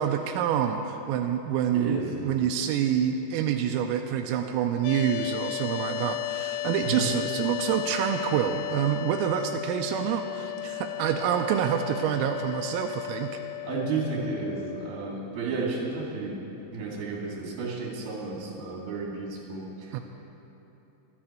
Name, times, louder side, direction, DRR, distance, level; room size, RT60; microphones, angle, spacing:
voice 1, 0.0-13.4 19.9-20.0, right 9 dB, 85° right, 4 dB, 3.3 m, -27 dB
voice 2, 1.7-2.5 6.8-7.1 13.6-16.4 16.7-19.9, right 4 dB, 55° right, -3 dB, 3.9 m, -32 dB
sound 1, 4.8-14.9, left 17 dB, 85° left, 3.1 m, -34 dB
24.0 x 9.8 x 4.4 m, 3.0 s
omnidirectional pair, 5.9 m